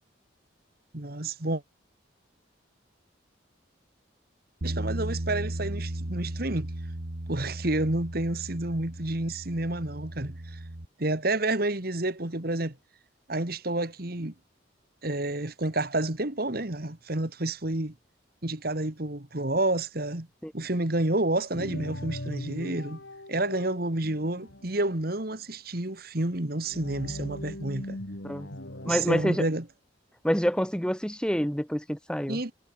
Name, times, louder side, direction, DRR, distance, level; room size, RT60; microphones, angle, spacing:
voice 1, 0.9-1.6 4.6-6.7 7.3-10.6 11.0-12.8 13.3-14.3 15.0-17.9 18.4-20.3 20.5-23.0 23.3-28.0 28.8-29.6 32.3-32.5, right 2 dB, 50° right, 2.1 m, -29 dB
Bass guitar, 4.6-10.9, right 1 dB, 80° right, 1.9 m, -36 dB
sound 1, 21.5-25.0 26.6-29.2, left 1 dB, 70° left, 4.3 m, -40 dB
voice 2, 28.8-29.4 30.2-32.4, equal, 5° left, 2.2 m, -27 dB
head